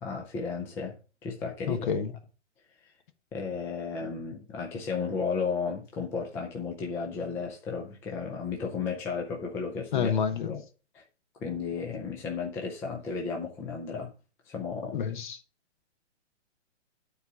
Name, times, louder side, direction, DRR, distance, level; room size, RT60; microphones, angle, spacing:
voice 1, 0.0-1.9 3.3-10.1 10.5-10.6 10.9-11.0 11.4-14.1 14.5-15.0, left 5 dB, 5° left, 0.5 m, -34 dB
voice 2, 1.7-2.2 9.9-10.6 14.9-15.4, left 7 dB, 40° left, 1.1 m, -29 dB
9.1 x 4.2 x 6.0 m
figure-of-eight pair, 125°, 36 cm